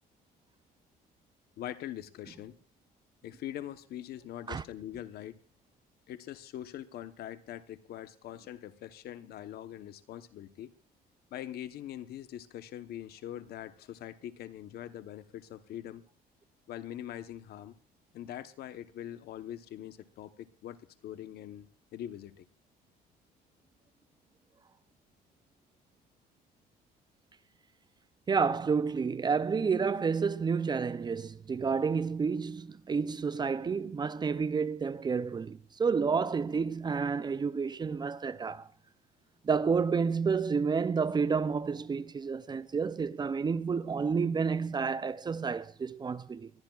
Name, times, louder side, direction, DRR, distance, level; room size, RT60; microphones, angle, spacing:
voice 1, 1.6-2.5 3.2-5.4 6.1-10.7 11.3-16.0 16.7-17.7 18.1-22.4, left 11 dB, 70° left, 1.0 m, -43 dB
voice 2, 28.3-38.7 39.4-46.5, right 5 dB, 25° right, 0.5 m, -30 dB
21.5 x 15.0 x 2.4 m
cardioid pair, 110°, 17 cm